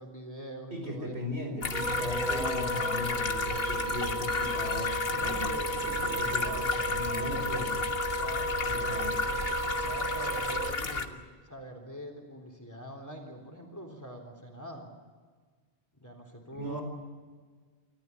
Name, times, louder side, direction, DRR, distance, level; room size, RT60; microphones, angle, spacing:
voice 1, 0.0-1.2 2.2-2.9 5.1-6.7 8.2-14.9 16.0-16.8, equal, 15° left, 3 dB, 3.6 m, -44 dB
voice 2, 0.7-5.5 5.8-7.8 8.6-9.1 16.6-16.8, left 1 dB, 70° right, 3 dB, 5.1 m, -38 dB
sound 1, 1.6-11.1, left 4 dB, 60° left, 1.6 m, -33 dB
Wind instrument woodwind instrument, 1.7-10.7, right 1 dB, 55° right, 2.7 m, -34 dB
27.5 x 14.0 x 9.7 m, 1.5 s
omnidirectional pair, 1.1 m